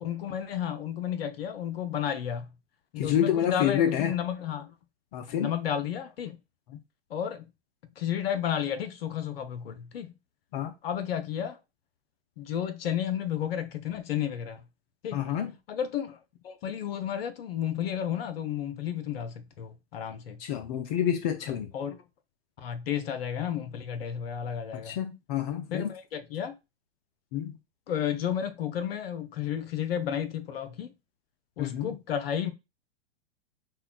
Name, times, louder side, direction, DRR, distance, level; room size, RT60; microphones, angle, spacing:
voice 1, 0.0-2.5 2.9-4.7 5.3-6.4 7.1-7.5 8.0-10.1 10.8-11.6 12.4-14.6 15.0-15.2 15.7-16.2 16.4-20.4 21.7-22.0 22.6-25.0 25.7-26.5 27.9-30.9 31.6-32.5, left 9 dB, 60° left, 0.8 m, -32 dB
voice 2, 3.0-4.1 5.1-5.5 10.5-10.7 15.1-15.5 20.4-21.7 24.7-25.9 27.3-27.6 31.6-32.0, left 10 dB, 40° left, 0.5 m, -28 dB
5.5 x 2.2 x 2.4 m
hypercardioid pair, 110°, 33 cm